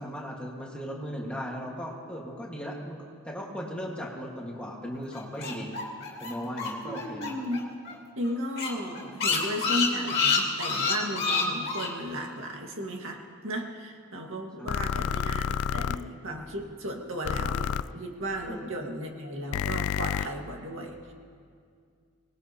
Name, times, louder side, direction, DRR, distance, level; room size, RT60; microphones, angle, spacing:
voice 1, 0.0-3.0 3.2-5.8 6.2-7.3 14.6-15.1 18.5-18.7, equal, 5° left, -3 dB, 1.7 m, -37 dB
sound 1, 5.1-7.6 7.9-8.0 8.2-8.3 8.6-11.9, left 5 dB, 45° left, 2.5 m, -27 dB
voice 2, 6.8-7.6 8.2-21.1, equal, 70° right, 1 dB, 1.8 m, -35 dB
sound 2, 14.7-16.0 17.3-17.8 19.5-20.3, left 7 dB, 80° left, 0.4 m, -29 dB
24.5 x 19.0 x 2.9 m, 2.2 s
head